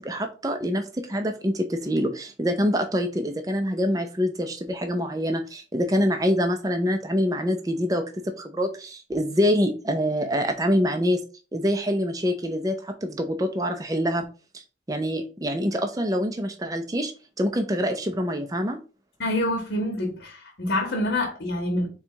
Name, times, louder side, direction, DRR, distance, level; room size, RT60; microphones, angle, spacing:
voice 1, 0.0-8.0 8.4-11.2 11.5-14.2 14.5-14.6 14.9-17.1 17.4-18.8, equal, 20° right, 0.5 m, -25 dB
voice 2, 19.2-21.9, left 1 dB, 65° left, 0.9 m, -26 dB
3.9 x 2.3 x 4.5 m
head